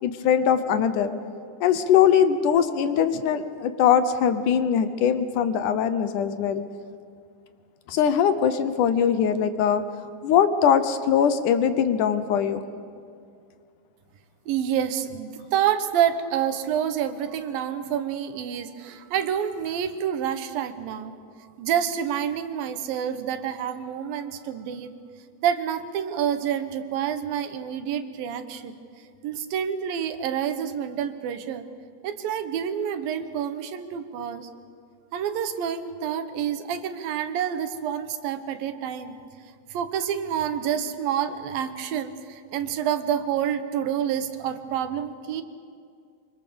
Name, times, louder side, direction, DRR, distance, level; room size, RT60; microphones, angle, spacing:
voice 1, 0.0-1.1 1.6-6.6 7.9-9.8 10.2-12.6, left 8 dB, 70° left, 11 dB, 2.3 m, -21 dB
voice 2, 14.5-21.1 21.6-24.9 25.4-28.8 29.2-31.7 32.0-34.5 35.1-39.2 39.7-45.4, right 9 dB, 90° right, 10 dB, 2.9 m, -28 dB
24.5 x 24.0 x 7.0 m, 2.3 s
omnidirectional pair, 4.0 m